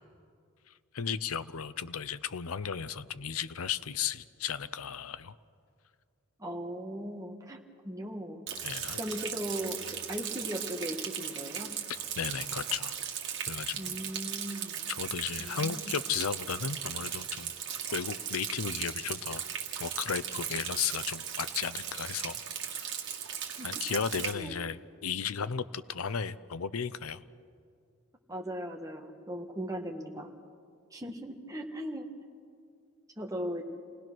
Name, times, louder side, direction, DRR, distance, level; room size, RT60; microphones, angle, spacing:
voice 1, 0.9-5.3 8.6-9.0 11.9-13.0 13.5-13.9 14.9-17.5 17.9-19.5 19.8-23.0 23.6-27.2, left 7 dB, 90° left, 14 dB, 0.7 m, -35 dB
voice 2, 6.4-7.6 7.8-8.4 9.0-11.7 13.8-14.9 15.4-15.9 23.6-23.7 24.3-24.5 28.3-30.3 30.9-32.1 33.2-33.6, equal, 15° right, 2 dB, 1.5 m, -38 dB
Rain, 8.5-24.3, right 9 dB, 55° right, 2.0 m, -37 dB
29.0 x 19.0 x 6.2 m, 2.3 s
head